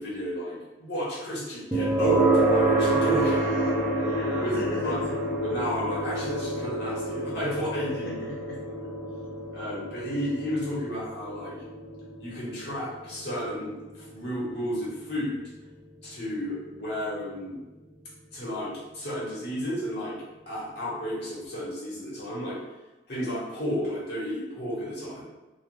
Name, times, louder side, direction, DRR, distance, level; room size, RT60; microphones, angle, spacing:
voice 1, 0.0-3.5 4.4-5.0 5.4-8.1 8.7-8.8 9.5-11.5 12.2-15.4 16.0-17.6 18.3-20.2 20.5-22.6 23.1-25.2, equal, 70° left, -7 dB, 1.1 m, -32 dB
sound 1, 1.7-16.6, right 2 dB, 10° right, 0.4 m, -28 dB
voice 2, 3.2-5.2 7.7-8.6, left 1 dB, 55° left, -5 dB, 0.4 m, -39 dB
3.2 x 2.3 x 2.5 m, 1.1 s
head